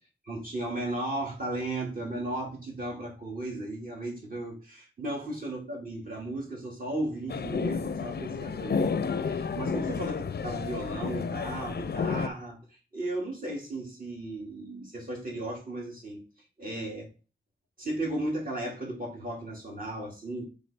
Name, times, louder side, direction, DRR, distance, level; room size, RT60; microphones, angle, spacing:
voice 1, 0.2-8.9 9.2-12.6 12.9-16.2 16.6-17.1 17.8-20.4, right 1 dB, 45° right, -1 dB, 2.4 m, -35 dB
sound 1, 7.3-12.3, left 5 dB, 55° left, 0.4 m, -31 dB
7.7 x 3.6 x 4.2 m, 0.34 s
wide cardioid pair, 105°, 20 cm